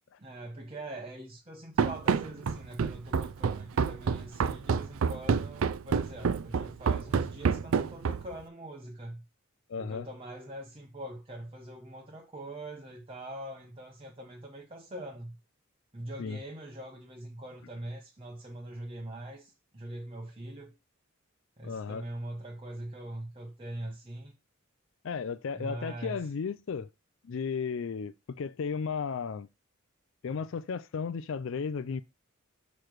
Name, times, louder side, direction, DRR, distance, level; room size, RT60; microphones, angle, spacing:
voice 1, 0.2-9.2 9.8-15.4 15.9-20.8 21.6-24.3 25.5-26.3, right 1 dB, 25° right, 0.9 m, -43 dB
Run, 1.8-8.4, right 6 dB, 70° right, 0.4 m, -28 dB
voice 2, 9.7-10.1 16.2-16.4 21.6-22.0 25.0-26.9 27.2-29.5 30.2-32.0, left 5 dB, 60° left, 0.4 m, -34 dB
6.8 x 3.2 x 6.0 m
head